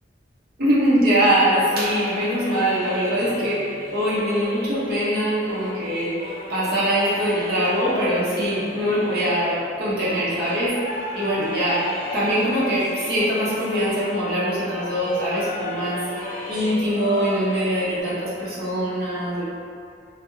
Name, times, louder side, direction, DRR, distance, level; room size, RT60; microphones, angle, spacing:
voice 1, 0.6-11.8 12.1-16.0 16.5-19.5, equal, 55° right, -9 dB, 0.7 m, -23 dB
sound 1, 1.5-14.3 14.6-18.0, left 1 dB, 40° left, 0.4 m, -35 dB
2.2 x 2.1 x 3.0 m, 2.4 s
head